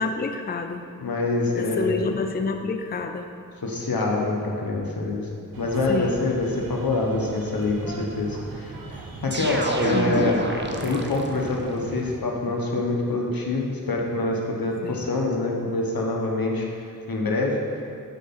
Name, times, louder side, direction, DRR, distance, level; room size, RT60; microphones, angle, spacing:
voice 1, 0.0-0.8 1.6-3.4 5.9-6.2 14.8-15.1, left 4 dB, 25° left, 6 dB, 0.5 m, -28 dB
voice 2, 1.0-2.2 3.6-5.3 5.6-8.7 9.2-10.4 10.8-17.6, left 2 dB, 80° left, 0 dB, 1.2 m, -25 dB
sound 1, 5.5-12.2, right 3 dB, 75° right, 0.8 m, -39 dB
sound 2, 9.3-11.5, right 1 dB, 30° right, 0.8 m, -27 dB
8.1 x 4.3 x 5.6 m, 2.4 s
wide cardioid pair, 50°, 35 cm